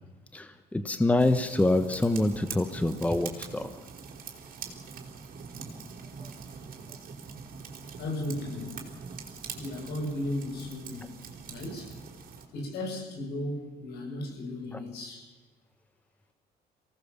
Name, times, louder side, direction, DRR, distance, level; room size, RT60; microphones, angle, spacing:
voice 1, 0.3-3.7 6.2-6.3 14.7-14.8, left 2 dB, 10° left, 10 dB, 1.2 m, -26 dB
sound 1, 1.2-12.4, right 5 dB, 60° right, 4.1 m, -43 dB
voice 2, 8.0-8.8 9.5-11.1 11.5-12.0 12.5-15.3, left 1 dB, 75° left, 1 dB, 7.8 m, -35 dB
24.0 x 18.0 x 7.4 m, 1.3 s
cardioid pair, 110°, 17 cm